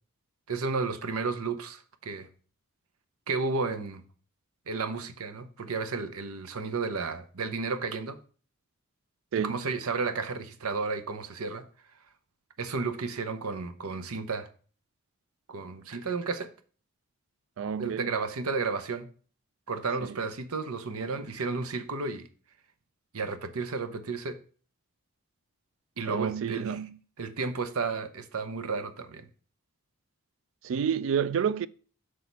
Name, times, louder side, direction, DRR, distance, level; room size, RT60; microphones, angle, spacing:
voice 1, 0.5-2.3 3.3-4.0 4.7-8.2 9.4-11.6 12.6-14.5 15.5-16.5 17.8-19.1 19.7-22.3 23.1-24.4 26.0-26.8 27.2-29.3, right 4 dB, 80° right, 0.7 m, -32 dB
voice 2, 9.3-9.6 17.6-18.1 20.0-20.2 26.0-27.0 30.6-31.7, right 7 dB, 60° right, 0.3 m, -29 dB
6.4 x 6.1 x 4.0 m
head